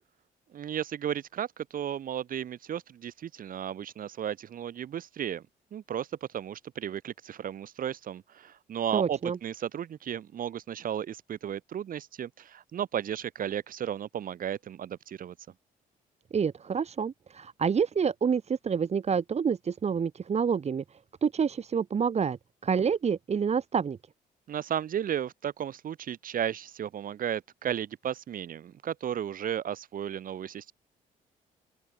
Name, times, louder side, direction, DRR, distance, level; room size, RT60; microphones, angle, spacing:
voice 1, 0.5-5.4 5.7-15.3 24.5-30.7, right 9 dB, 60° right, 7.8 m, -34 dB
voice 2, 8.9-9.4 16.3-20.8 21.2-22.4 22.6-24.0, right 6 dB, 45° right, 3.0 m, -28 dB
open air
cardioid pair, 85°, 16 cm